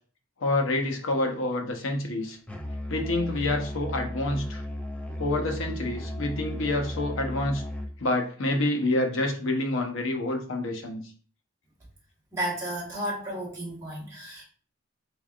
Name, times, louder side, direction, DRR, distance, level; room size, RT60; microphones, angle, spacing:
voice 1, 0.4-2.4 2.9-4.6 5.2-7.6 8.0-11.0, left 2 dB, 80° left, 3 dB, 0.8 m, -27 dB
Musical instrument, 2.5-8.0, left 1 dB, 5° left, 0.4 m, -35 dB
voice 2, 12.3-14.4, right 1 dB, 15° right, -8 dB, 1.2 m, -33 dB
4.2 x 3.3 x 2.4 m, 0.42 s
head